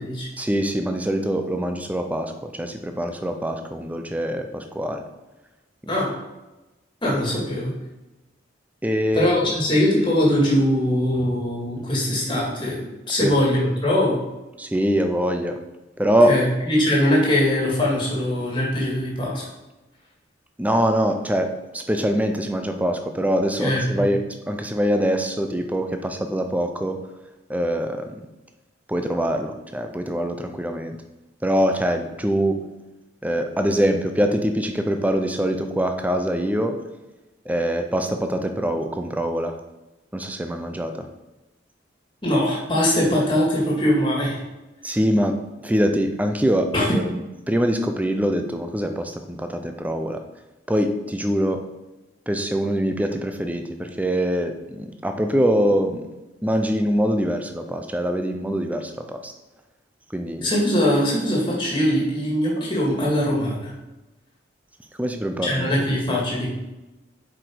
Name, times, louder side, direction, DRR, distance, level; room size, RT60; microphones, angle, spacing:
voice 1, 0.4-5.0 5.8-5.9 8.8-9.6 13.1-13.4 14.6-15.6 16.0-16.4 20.6-27.0 27.5-28.1 28.9-31.0 31.4-32.6 33.2-36.8 37.5-39.6 40.1-41.1 44.8-50.2 50.7-51.7 52.3-56.1 56.4-59.3 60.1-60.5 65.0-65.8 66.0-66.2, equal, 10° right, 6 dB, 0.6 m, -24 dB
voice 2, 7.0-7.7 9.1-14.2 16.3-19.4 23.6-24.1 42.2-44.4 46.7-46.9 60.4-63.7 65.4-66.5, left 1 dB, 25° left, -4 dB, 2.1 m, -21 dB
7.5 x 5.0 x 4.7 m, 1.0 s
head